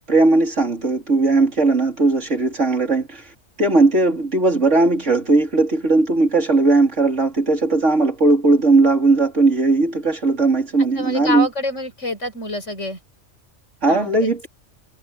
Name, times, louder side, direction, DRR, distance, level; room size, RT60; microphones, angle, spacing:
voice 1, 0.1-3.2 3.6-11.5 13.8-14.5, right 3 dB, 85° right, 4.3 m, -17 dB
voice 2, 10.9-13.0 13.9-14.3, left 1 dB, 90° left, 5.2 m, -27 dB
omnidirectional pair, 1.2 m